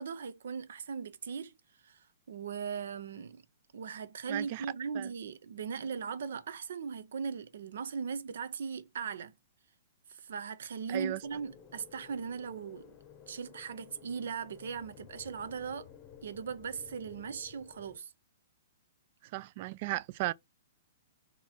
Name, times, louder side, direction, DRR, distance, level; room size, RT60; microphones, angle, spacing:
voice 1, 0.0-1.5 1.8-3.4 3.7-9.3 10.1-13.0 13.3-15.9 16.2-18.1, right 6 dB, 75° right, 0.8 m, -39 dB
voice 2, 4.3-4.7 4.9-5.1 10.9-11.2 19.3-20.3, right 18 dB, 45° right, 0.3 m, -35 dB
sound 1, 11.2-18.0, left 9 dB, 30° left, 0.8 m, -54 dB
4.1 x 3.0 x 4.1 m
hypercardioid pair, 150°, 0 cm